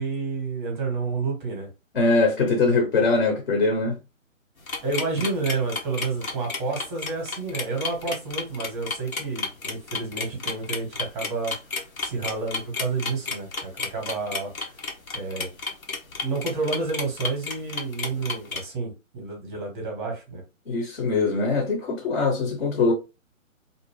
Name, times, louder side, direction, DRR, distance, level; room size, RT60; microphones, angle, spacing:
voice 1, 0.0-1.7 4.8-11.5 12.0-14.5 15.1-15.5 16.2-20.4, right 4 dB, 10° right, 0.7 m, -30 dB
voice 2, 1.9-4.0 20.7-22.9, left 3 dB, 45° left, 0.7 m, -22 dB
sound 1, 4.6-18.6, left 4 dB, 90° left, 0.9 m, -31 dB
2.6 x 2.1 x 3.0 m
figure-of-eight pair, 145°, 41 cm